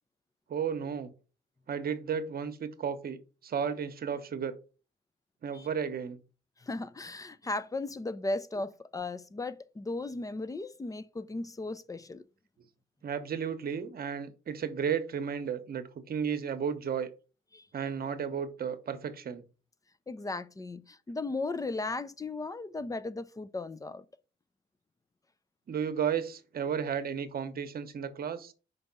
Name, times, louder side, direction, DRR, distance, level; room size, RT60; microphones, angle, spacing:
voice 1, 0.5-1.1 1.7-4.6 5.4-6.2 13.0-17.1 17.7-19.4 25.7-28.5, right 7 dB, 50° right, 0.9 m, -33 dB
voice 2, 6.6-12.2 17.5-17.7 20.1-24.0, left 2 dB, 15° left, 0.5 m, -36 dB
5.4 x 3.5 x 5.4 m
cardioid pair, 90°, 20 cm